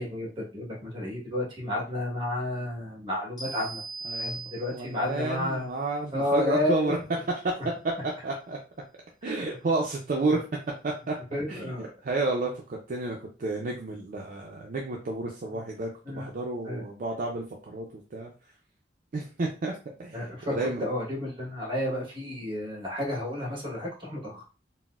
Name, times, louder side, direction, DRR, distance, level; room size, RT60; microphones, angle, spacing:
voice 1, 0.0-3.8 4.2-5.7 6.1-6.9 9.2-9.6 11.3-11.9 16.0-16.3 16.6-16.8 20.1-24.4, left 1 dB, 30° right, -2 dB, 1.2 m, -31 dB
sound 1, 3.4-5.1, right 2 dB, 25° left, 1.0 m, -38 dB
voice 2, 4.7-7.0 7.8-8.6 9.2-10.4 10.8-11.2 11.5-18.3 19.1-20.2 20.5-20.8, right 2 dB, 50° right, 0 dB, 0.4 m, -31 dB
4.0 x 2.0 x 2.3 m, 0.34 s
head